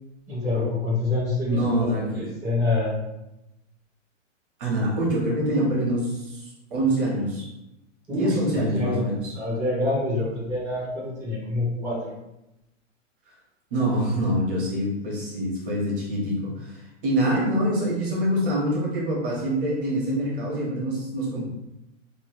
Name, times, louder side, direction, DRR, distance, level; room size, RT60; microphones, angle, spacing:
voice 1, 0.3-1.9 2.1-2.9 8.1-9.0 9.3-12.1, left 2 dB, 5° right, -13 dB, 0.6 m, -26 dB
voice 2, 1.5-2.2 4.6-6.4 6.7-7.5 8.1-9.3 13.7-21.4, right 1 dB, 45° right, -4 dB, 1.1 m, -25 dB
3.1 x 2.2 x 2.9 m, 0.91 s
hypercardioid pair, 165°, 38 cm